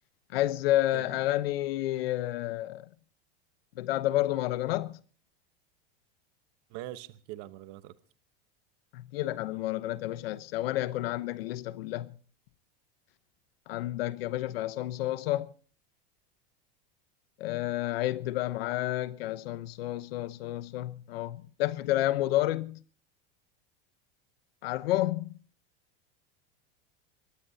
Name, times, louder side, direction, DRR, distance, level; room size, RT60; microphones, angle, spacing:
voice 1, 0.3-2.9 3.8-5.0 8.9-12.1 13.7-15.5 17.4-22.8 24.6-25.3, left 15 dB, 80° left, 0.9 m, -30 dB
voice 2, 0.9-1.2 6.7-7.9, right 14 dB, 55° right, 1.0 m, -43 dB
23.0 x 19.0 x 2.8 m
supercardioid pair, 130°, 29 cm